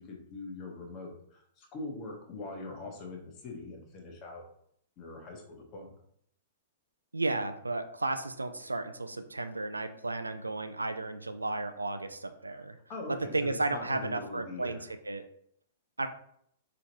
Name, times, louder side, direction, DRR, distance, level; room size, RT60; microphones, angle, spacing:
voice 1, 0.0-4.4 5.0-5.9 12.5-12.6 12.9-14.8, left 3 dB, 35° left, 2 dB, 1.0 m, -42 dB
voice 2, 7.1-12.8 13.1-15.3 16.0-16.1, right 2 dB, 80° right, 9 dB, 0.3 m, -33 dB
4.8 x 3.0 x 2.9 m, 0.68 s
figure-of-eight pair, 105°, 0 cm